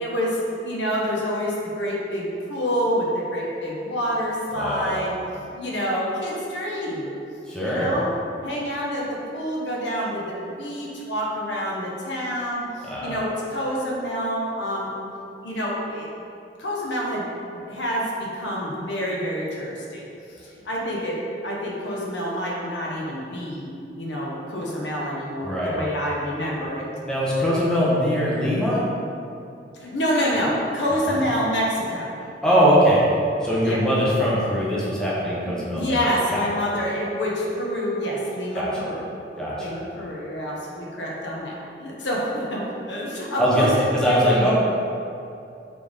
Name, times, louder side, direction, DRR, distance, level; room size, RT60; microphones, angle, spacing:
voice 1, 0.0-5.2 5.6-7.1 7.6-8.1 8.4-14.9 15.4-16.1 16.6-17.3 17.7-20.1 20.6-26.9 29.8-32.1 33.6-33.8 35.4-39.0 39.6-44.5, equal, 75° left, -3 dB, 0.8 m, -27 dB
voice 2, 4.5-5.0 7.5-7.9 12.9-13.1 25.4-25.7 27.0-28.8 31.1-31.2 32.4-33.0 33.4-36.0 36.3-36.4 38.5-38.8 39.4-39.7 43.4-44.5, equal, 5° left, -8 dB, 0.8 m, -21 dB
3.9 x 3.3 x 3.4 m, 2.6 s
head